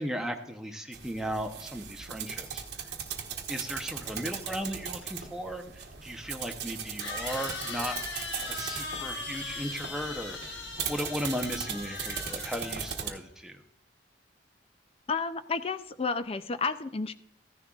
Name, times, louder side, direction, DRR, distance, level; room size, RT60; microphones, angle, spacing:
voice 1, 0.0-2.6 3.5-5.6 6.0-8.0 8.5-10.6 10.9-13.6, equal, 5° right, 3 dB, 0.8 m, -36 dB
sound 1, 0.9-13.1, right 7 dB, 60° right, 1.1 m, -39 dB
sound 2, 7.0-13.1, left 3 dB, 75° left, 1.4 m, -39 dB
voice 2, 15.1-17.1, left 4 dB, 30° left, 12 dB, 0.4 m, -31 dB
14.5 x 10.5 x 2.4 m, 0.80 s
head